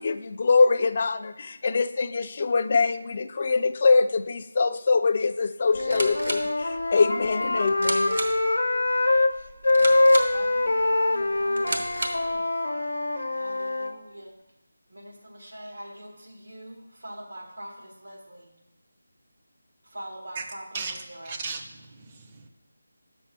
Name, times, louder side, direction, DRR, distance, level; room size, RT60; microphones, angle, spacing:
voice 1, 0.0-8.2, left 4 dB, 40° left, 11 dB, 0.3 m, -23 dB
Wind instrument woodwind instrument, 5.7-9.3 9.6-13.9, left 2 dB, 75° left, 0.7 m, -24 dB
sound 1, 5.7-12.4, right 2 dB, 60° right, 0.9 m, -35 dB
voice 2, 10.3-12.5 13.3-14.3 14.9-18.5 19.8-21.4, right 1 dB, 85° right, 0 dB, 1.6 m, -43 dB
voice 3, 20.7-22.5, right 4 dB, 25° right, 4 dB, 0.5 m, -36 dB
7.0 x 5.9 x 3.3 m, 1.0 s
figure-of-eight pair, 170°, 0 cm